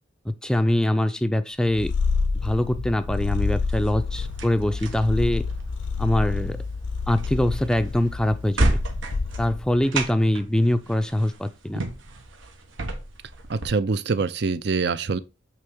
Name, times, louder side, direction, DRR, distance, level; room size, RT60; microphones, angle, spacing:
voice 1, 0.3-1.9 2.4-5.4 6.0-6.6 7.1-8.8 9.4-11.8, left 1 dB, 5° left, 0.4 m, -23 dB
Purr, 1.7-9.8, left 4 dB, 70° left, 0.5 m, -28 dB
sound 1, 3.7-13.7, right 1 dB, 80° right, 1.1 m, -32 dB
voice 2, 13.5-15.2, right 4 dB, 55° right, 0.5 m, -24 dB
8.3 x 3.4 x 3.6 m
head